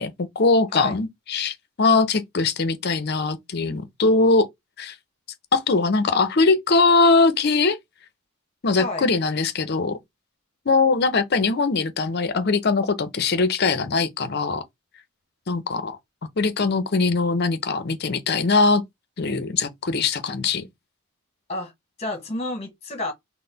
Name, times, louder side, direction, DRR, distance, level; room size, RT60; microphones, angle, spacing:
voice 1, 0.0-4.5 4.8-4.9 5.5-7.8 8.6-10.0 10.7-14.6 15.5-16.0 16.4-18.8 19.2-20.7, left 3 dB, 50° left, 0.6 m, -21 dB
voice 2, 22.0-23.1, left 2 dB, 30° left, 1.2 m, -30 dB
3.9 x 2.1 x 3.9 m
head